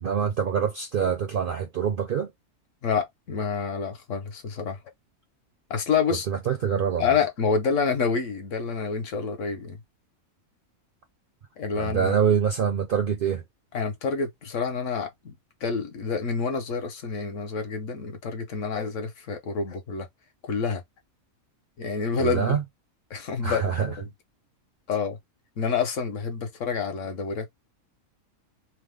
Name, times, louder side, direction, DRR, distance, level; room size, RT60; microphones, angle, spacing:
voice 1, 0.0-2.3 6.3-7.1 11.8-13.4 22.2-22.6 23.4-23.9, right 7 dB, 60° right, 0.5 m, -25 dB
voice 2, 2.8-4.8 5.7-6.3 7.0-9.8 11.6-12.1 13.7-15.3 15.6-20.1 20.4-20.8 21.8-22.6 23.1-24.1 24.9-25.2 25.6-27.5, left 5 dB, 65° left, 1.1 m, -28 dB
2.9 x 2.0 x 3.3 m
omnidirectional pair, 1.4 m